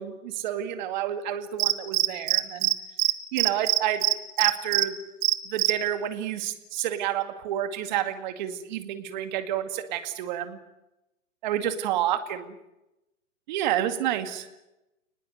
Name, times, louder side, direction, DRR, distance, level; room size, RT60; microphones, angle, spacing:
voice 1, 0.0-2.7 3.3-4.0 4.4-5.0 5.5-10.6 11.4-12.5 13.5-14.5, right 11 dB, 35° right, 8 dB, 2.2 m, -29 dB
Cricket, 1.6-2.7 3.0-3.1 3.4-4.8 5.2-5.7, right 21 dB, 20° right, 0.9 m, -22 dB
30.0 x 20.0 x 8.0 m, 0.93 s
hypercardioid pair, 155°, 39 cm